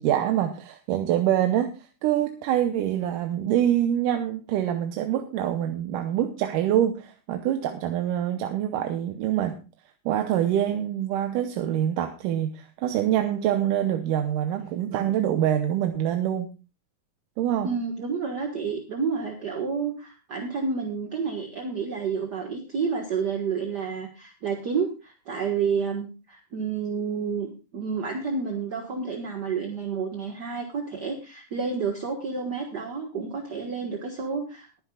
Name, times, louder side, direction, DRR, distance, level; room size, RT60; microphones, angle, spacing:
voice 1, 0.0-9.6 10.1-16.5 17.4-17.8, right 11 dB, 75° right, 6 dB, 2.4 m, -25 dB
voice 2, 17.6-34.8, right 5 dB, 45° right, 3 dB, 1.4 m, -30 dB
22.0 x 10.0 x 2.4 m, 0.31 s
omnidirectional pair, 4.0 m